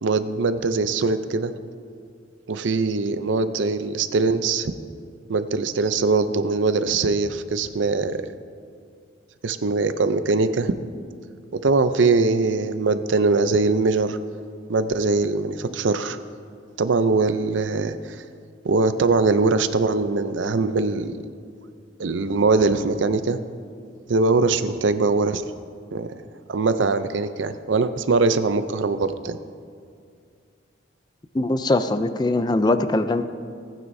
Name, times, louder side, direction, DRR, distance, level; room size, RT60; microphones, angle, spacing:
voice 1, 0.0-1.5 2.5-4.7 5.3-8.2 9.4-10.7 11.5-14.2 14.7-16.2 16.8-18.2 18.6-21.2 22.0-23.4 24.1-25.4 25.9-26.1 26.5-29.4, right 3 dB, 75° right, 11 dB, 0.5 m, -22 dB
voice 2, 31.3-33.2, left 2 dB, 20° left, 10 dB, 0.4 m, -21 dB
18.0 x 9.2 x 2.7 m, 2.2 s
head